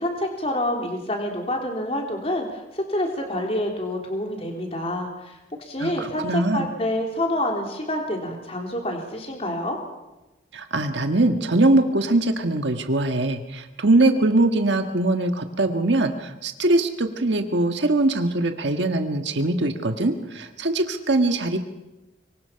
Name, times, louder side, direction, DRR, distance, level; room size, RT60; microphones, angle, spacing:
voice 1, 0.0-9.8, left 1 dB, 30° left, 2 dB, 3.4 m, -27 dB
voice 2, 5.8-6.7 10.5-21.6, right 2 dB, 80° right, 6 dB, 1.6 m, -22 dB
24.5 x 24.0 x 5.8 m, 1.0 s
head